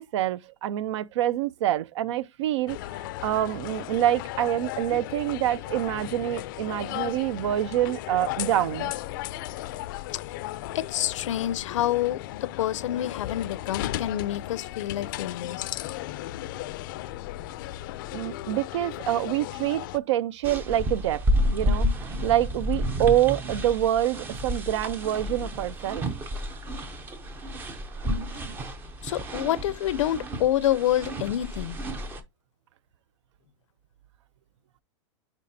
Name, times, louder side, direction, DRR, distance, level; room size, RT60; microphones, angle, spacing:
voice 1, 0.0-8.9 18.1-21.2 21.5-26.1, right 12 dB, 70° right, 0.5 m, -26 dB
sound 1, 2.7-20.0, left 15 dB, 45° left, 0.4 m, -36 dB
voice 2, 10.7-15.7 29.0-31.8, left 12 dB, 90° left, 0.6 m, -27 dB
sound 2, 20.4-32.2, equal, 15° right, 0.5 m, -30 dB
9.7 x 4.1 x 2.6 m
supercardioid pair, 170°, 15 cm